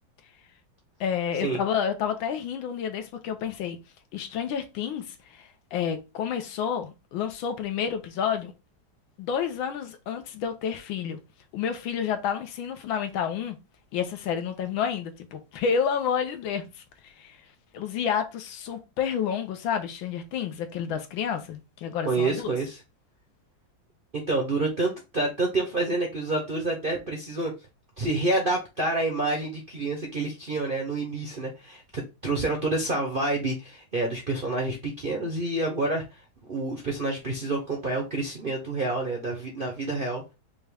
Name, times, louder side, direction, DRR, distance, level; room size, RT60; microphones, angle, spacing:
voice 1, 1.0-3.8 4.1-8.5 9.2-11.2 11.5-13.6 13.9-16.7 17.0-17.4 17.7-22.5, left 7 dB, 80° left, 1.5 m, -29 dB
voice 2, 22.1-22.8 24.1-27.5 28.0-36.2 36.5-40.2, right 2 dB, 50° right, 0.6 m, -28 dB
5.3 x 2.3 x 3.3 m
omnidirectional pair, 2.2 m